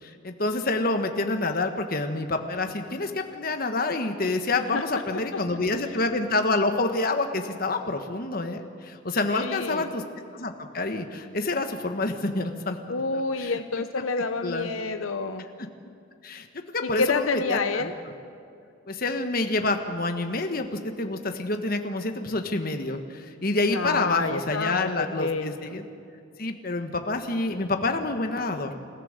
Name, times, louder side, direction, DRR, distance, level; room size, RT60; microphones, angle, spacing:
voice 1, 0.0-10.0 10.3-12.8 13.4-13.6 14.0-14.1 14.4-14.7 16.2-17.9 18.9-25.8 26.4-28.7, left 2 dB, 45° left, 6 dB, 1.4 m, -28 dB
voice 2, 9.3-9.9 12.9-15.4 16.8-17.9 23.7-25.7, left 4 dB, 85° left, 9 dB, 0.8 m, -28 dB
29.0 x 15.0 x 6.7 m, 2.5 s
head